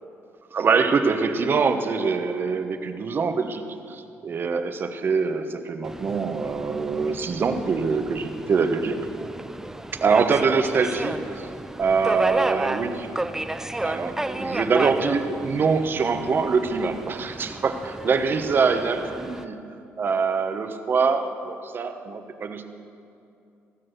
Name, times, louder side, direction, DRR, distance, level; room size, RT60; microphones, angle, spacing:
voice 1, 0.5-9.0 10.0-11.5 11.8-13.1 13.8-19.6 20.0-22.6, right 5 dB, 45° right, 8 dB, 1.0 m, -24 dB
Subway metro underground, 5.8-19.4, right 1 dB, 10° right, 0.5 m, -32 dB
17.5 x 6.3 x 8.0 m, 2.6 s
cardioid pair, 100°, 5 cm